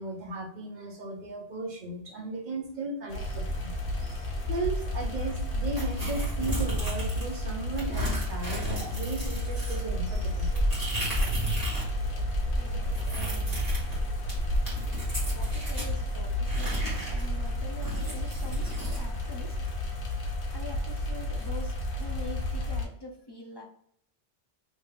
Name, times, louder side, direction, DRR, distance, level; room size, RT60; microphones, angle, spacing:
voice 1, 0.0-3.7 4.5-10.5, right 2 dB, 50° right, 1 dB, 0.9 m, -36 dB
sound 1, 3.1-22.9, left 1 dB, 85° left, 1.1 m, -32 dB
sound 2, 3.2-18.4, right 6 dB, 85° right, 1.2 m, -40 dB
sound 3, 5.8-7.4 7.8-11.9 12.2-15.9 16.4-19.0, equal, 20° right, 1.5 m, -33 dB
voice 2, 12.6-14.2 14.7-19.6 20.5-23.6, left 1 dB, 35° left, 0 dB, 0.4 m, -45 dB
3.1 x 2.8 x 3.5 m, 0.65 s
omnidirectional pair, 1.1 m